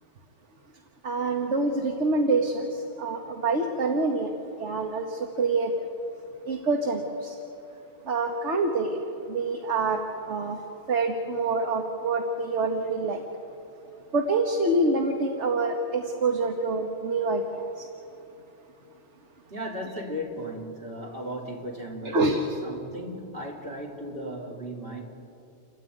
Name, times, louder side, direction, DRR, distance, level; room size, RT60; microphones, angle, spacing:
voice 1, 1.0-5.9 6.4-7.4 8.0-13.2 14.1-17.9 22.1-22.4, right 3 dB, 65° right, 3 dB, 1.7 m, -26 dB
voice 2, 19.5-25.0, equal, 50° right, -2 dB, 3.5 m, -36 dB
29.0 x 13.5 x 9.1 m, 2.8 s
omnidirectional pair, 1.3 m